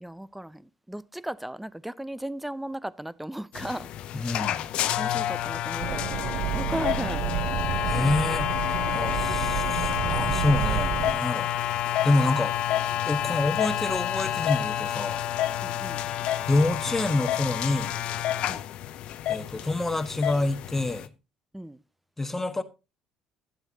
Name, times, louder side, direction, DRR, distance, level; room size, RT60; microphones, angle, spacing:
voice 1, 0.0-3.9 4.5-4.6 5.0-7.2 15.6-16.0 18.5-18.7 21.5-21.8, right 1 dB, 5° right, 0.6 m, -36 dB
sound 1, 3.5-21.1, left 11 dB, 60° left, 0.6 m, -29 dB
voice 2, 4.1-4.6 7.9-8.5 8.9-11.5 12.0-12.6 13.1-15.2 16.5-17.9 19.3-21.1 22.2-22.6, left 2 dB, 15° left, 1.3 m, -27 dB
sound 2, 5.8-11.1, right 12 dB, 65° right, 0.5 m, -30 dB
12.0 x 10.5 x 2.8 m
hypercardioid pair, 55°, 2 cm